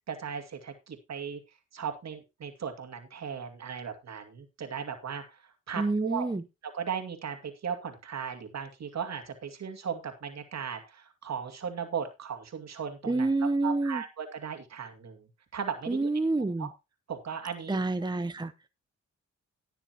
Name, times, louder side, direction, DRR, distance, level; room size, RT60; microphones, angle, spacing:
voice 1, 0.1-1.4 1.7-6.3 6.7-13.3 13.6-16.1 16.6-16.7 17.1-17.8, right 7 dB, 60° right, 2.4 m, -37 dB
voice 2, 5.8-6.4 13.1-14.0 15.9-16.7 17.7-18.5, right 2 dB, 15° right, 0.8 m, -28 dB
18.5 x 6.8 x 2.9 m
cardioid pair, 65°, 29 cm